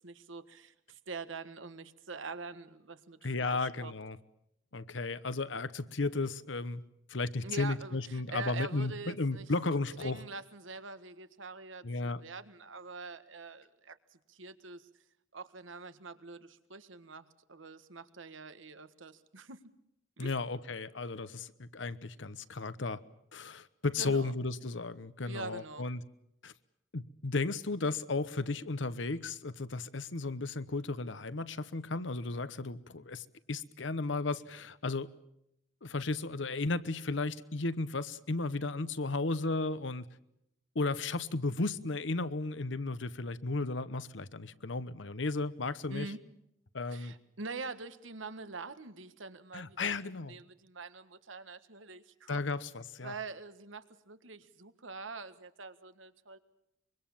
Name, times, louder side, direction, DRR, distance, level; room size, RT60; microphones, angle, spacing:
voice 1, 0.0-3.9 7.4-9.5 10.0-14.0 14.3-14.9 15.3-19.6 20.2-20.3 24.0-24.3 25.2-25.9 45.9-46.2 46.9-50.0 50.3-52.4 53.0-56.4, right 4 dB, 85° right, 1.6 m, -45 dB
voice 2, 3.2-4.2 4.7-6.8 7.1-10.2 11.8-12.2 20.2-23.0 23.3-26.0 26.4-26.5 26.9-35.1 35.8-40.1 40.7-46.1 46.7-47.1 49.5-50.3 52.3-53.1, left 3 dB, 70° left, 1.1 m, -34 dB
25.0 x 24.0 x 7.2 m
head